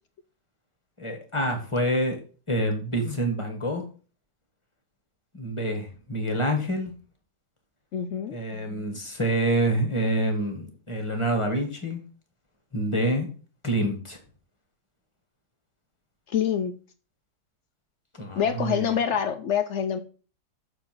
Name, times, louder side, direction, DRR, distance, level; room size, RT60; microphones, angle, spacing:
voice 1, 1.0-2.2 2.5-3.8 5.3-6.9 8.3-12.0 12.7-13.3 13.6-14.2 18.1-19.0, right 1 dB, 20° left, 1.6 m, -27 dB
voice 2, 7.9-8.4 16.3-16.7 18.3-20.0, left 8 dB, 65° left, 0.7 m, -26 dB
6.6 x 4.7 x 5.9 m
omnidirectional pair, 1.8 m